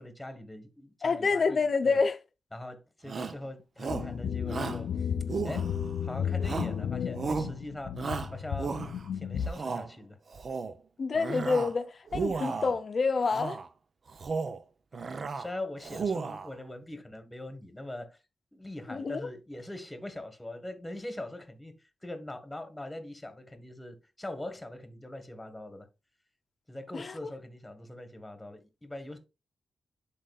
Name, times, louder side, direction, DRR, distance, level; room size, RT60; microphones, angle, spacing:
voice 1, 0.0-2.0 2.5-4.9 5.4-5.7 6.0-8.0 8.3-8.7 9.1-10.2 15.3-18.2 18.5-21.7 22.0-25.9 26.7-29.2, left 1 dB, 10° left, 1.3 m, -42 dB
voice 2, 1.0-2.2 11.0-13.6 18.9-19.3 26.9-27.2, left 4 dB, 50° left, 0.7 m, -28 dB
Shout, 3.1-3.4 3.8-4.1 4.5-4.8 5.3-6.0 6.4-6.8 7.1-7.5 8.0-9.1 9.5-9.9 10.3-10.8 11.1-11.8 12.1-12.8 13.3-13.7 14.1-14.6 14.9-15.5 15.8-16.5, right 4 dB, 55° right, 0.6 m, -34 dB
sound 1, 3.9-9.5, left 7 dB, 85° left, 0.5 m, -33 dB
10.5 x 3.8 x 2.3 m
cardioid pair, 90°, 0 cm